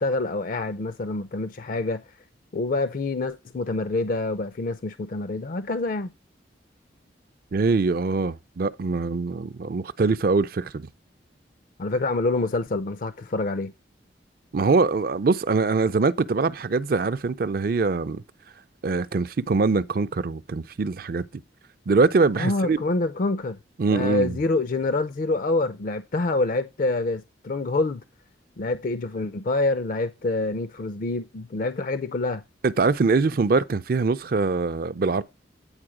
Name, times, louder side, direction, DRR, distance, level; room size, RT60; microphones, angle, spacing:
voice 1, 0.0-2.0 2.5-6.1 11.8-13.7 22.4-23.6 23.9-28.0 28.6-32.4, left 2 dB, 45° left, 0.4 m, -26 dB
voice 2, 7.5-10.9 14.5-18.2 18.8-21.2 21.9-22.8 23.8-24.4 32.6-35.2, right 4 dB, 50° right, 0.4 m, -23 dB
8.9 x 4.5 x 4.8 m
head